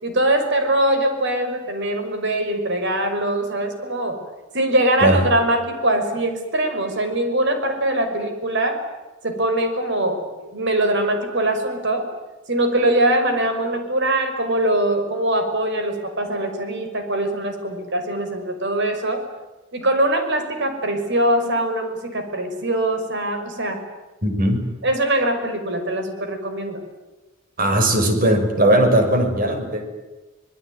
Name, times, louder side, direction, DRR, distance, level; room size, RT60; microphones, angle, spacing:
voice 1, 0.0-4.2 4.5-8.8 9.2-12.1 12.5-19.2 19.7-23.8 24.8-26.8, right 1 dB, 60° right, 7 dB, 5.7 m, -22 dB
voice 2, 24.2-24.6 27.6-29.8, right 1 dB, 45° right, 5 dB, 6.1 m, -18 dB
26.0 x 21.0 x 9.4 m, 1.2 s
head